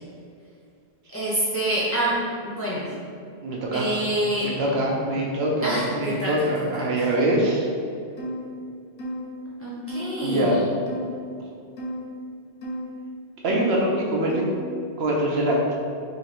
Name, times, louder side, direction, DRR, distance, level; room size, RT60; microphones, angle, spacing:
voice 1, 1.1-2.1 2.4-2.9 3.7-4.5 5.6-6.3 6.8-7.0 9.6-10.6, right 1 dB, 15° left, -8 dB, 0.7 m, -27 dB
voice 2, 3.4-3.9 4.4-7.7 10.2-10.6 13.4-14.5 15.0-15.8, right 1 dB, 70° right, -1 dB, 0.8 m, -23 dB
sound 1, 8.2-8.4 9.0-9.3 9.9-10.1 10.9-11.2 11.8-12.0 12.6-12.8 13.5-13.7 14.3-14.6, equal, 75° left, 1.0 m, -32 dB
3.0 x 2.5 x 4.2 m, 2.3 s
omnidirectional pair, 1.1 m